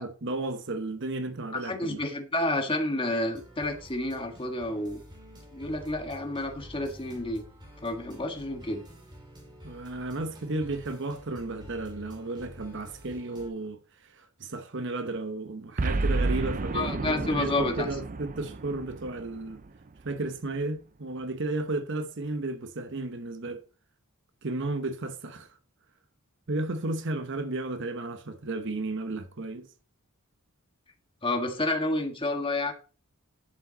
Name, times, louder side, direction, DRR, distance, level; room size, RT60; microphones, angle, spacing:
voice 1, 0.0-2.0 9.6-19.6 20.0-23.6 24.4-25.6 26.5-29.7, right 2 dB, 55° right, 0.9 m, -33 dB
voice 2, 1.5-5.0 5.5-7.5 7.8-8.8 16.7-17.9 31.2-32.7, left 2 dB, 25° left, 1.6 m, -30 dB
sound 1, 3.2-13.5, equal, 20° right, 2.9 m, -49 dB
Boom, 15.8-20.2, right 3 dB, 35° right, 0.5 m, -31 dB
11.0 x 7.1 x 4.0 m
head